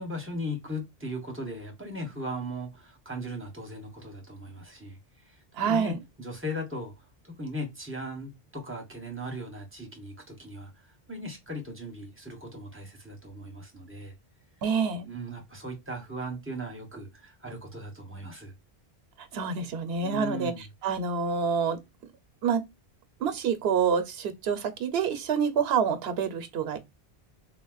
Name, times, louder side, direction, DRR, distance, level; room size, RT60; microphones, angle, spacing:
voice 1, 0.0-5.0 5.3-6.9 7.2-10.7 11.1-14.1 15.0-18.5 20.0-20.6, equal, 15° right, 0.8 m, -38 dB
voice 2, 5.6-6.0 14.6-15.1 19.3-20.5 20.8-21.8 22.4-22.6 23.2-26.8, right 6 dB, 75° right, 0.9 m, -27 dB
3.5 x 2.1 x 2.2 m
omnidirectional pair, 1.1 m